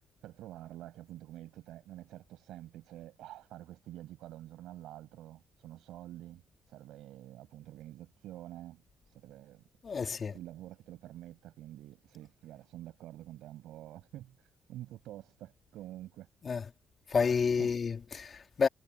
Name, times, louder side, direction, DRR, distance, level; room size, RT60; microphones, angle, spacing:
voice 1, 0.2-9.6 10.0-16.3 17.6-17.7, right 14 dB, 85° right, 6.7 m, -48 dB
voice 2, 9.8-10.4 16.4-16.7 17.1-18.7, left 5 dB, 45° left, 2.3 m, -30 dB
cardioid pair, 90°, 0 cm